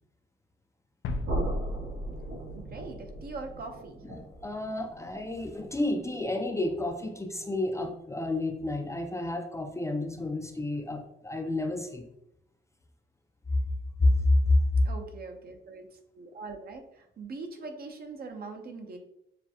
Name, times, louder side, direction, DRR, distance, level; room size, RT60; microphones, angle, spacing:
sound 1, 1.0-3.5, left 2 dB, 75° left, 0.6 m, -39 dB
sound 2, 1.2-7.1, right 1 dB, 80° right, 1.6 m, -38 dB
voice 1, 2.5-4.0 14.8-19.0, right 3 dB, 50° right, 4 dB, 0.8 m, -42 dB
voice 2, 4.1-12.1 14.0-14.9, left 2 dB, 15° left, 3 dB, 0.5 m, -29 dB
6.7 x 2.2 x 2.8 m, 0.79 s
cardioid pair, 90°, 20 cm